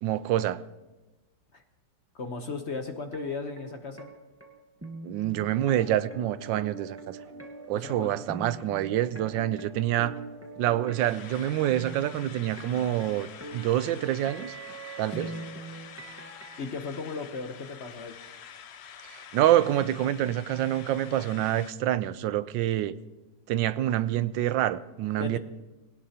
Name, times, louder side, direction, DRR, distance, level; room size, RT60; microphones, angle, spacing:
voice 1, 0.0-0.6 5.0-7.2 7.7-10.2 10.6-13.3 13.5-14.5 15.0-15.3 19.1-22.9 23.5-25.4, right 13 dB, 90° right, 1.3 m, -27 dB
voice 2, 2.1-4.1 7.7-8.1 15.1-15.3 16.6-18.2 25.2-25.4, left 4 dB, 45° left, 1.0 m, -36 dB
sound 1, 3.1-16.6, right 3 dB, 10° right, 1.0 m, -44 dB
sound 2, 5.5-10.9, right 3 dB, 30° right, 2.2 m, -46 dB
sound 3, 11.0-21.7, left 8 dB, 85° left, 0.5 m, -47 dB
20.0 x 17.5 x 2.9 m
omnidirectional pair, 1.9 m